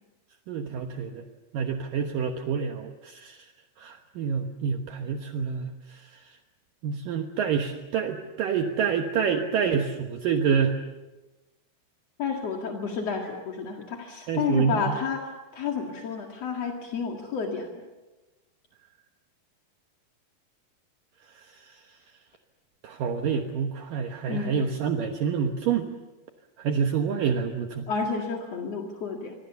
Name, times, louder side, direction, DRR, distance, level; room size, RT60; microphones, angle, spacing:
voice 1, 0.5-1.2 1.5-3.4 3.8-6.0 6.8-10.8 14.3-14.9 21.7-21.8 22.8-25.9 26.6-27.9, right 6 dB, 80° right, 4 dB, 1.9 m, -27 dB
voice 2, 12.2-17.7 24.3-24.7 27.9-29.3, left 5 dB, 50° left, 1 dB, 2.0 m, -30 dB
25.5 x 25.5 x 7.0 m, 1.1 s
omnidirectional pair, 5.8 m